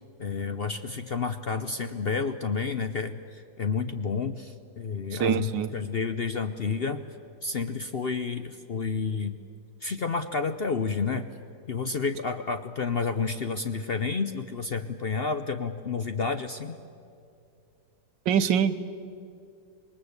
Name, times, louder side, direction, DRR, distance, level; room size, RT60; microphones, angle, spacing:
voice 1, 0.2-7.0 7.4-9.4 9.8-11.3 11.7-16.8, left 5 dB, 55° left, 9 dB, 0.6 m, -30 dB
voice 2, 5.2-5.7 18.3-18.8, right 8 dB, 85° right, 12 dB, 1.6 m, -23 dB
26.5 x 20.5 x 8.1 m, 2.5 s
omnidirectional pair, 1.9 m